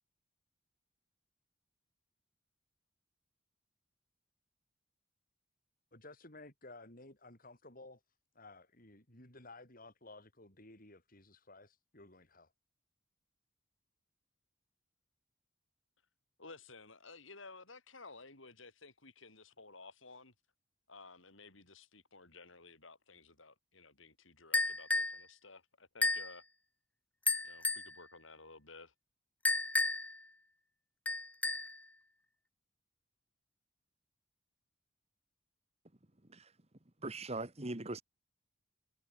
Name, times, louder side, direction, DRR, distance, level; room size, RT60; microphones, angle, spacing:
voice 1, 5.9-8.0 8.4-12.5, left 2 dB, 45° left, 7.2 m, -55 dB
voice 2, 16.4-20.3 20.9-26.4 27.4-28.9, left 3 dB, 75° left, 7.7 m, -55 dB
sound 1, 24.5-25.2 26.0-26.3 27.3-27.9 29.4-30.2 31.1-31.8, left 2 dB, 10° left, 0.4 m, -32 dB
voice 3, 37.0-38.0, right 2 dB, 30° right, 1.8 m, -40 dB
head